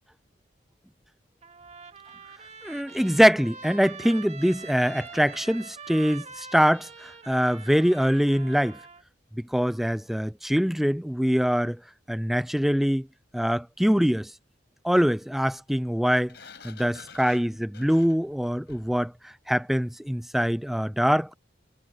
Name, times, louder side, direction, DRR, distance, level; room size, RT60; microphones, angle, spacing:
Trumpet, 1.4-9.0, right 5 dB, 40° right, 2.6 m, -44 dB
voice 1, 2.6-8.8 9.4-11.8 12.1-13.1 13.3-14.3 14.8-16.3 16.6-21.4, equal, ahead, 0.4 m, -24 dB
Sliding door, 16.3-19.1, left 5 dB, 70° left, 4.8 m, -49 dB
head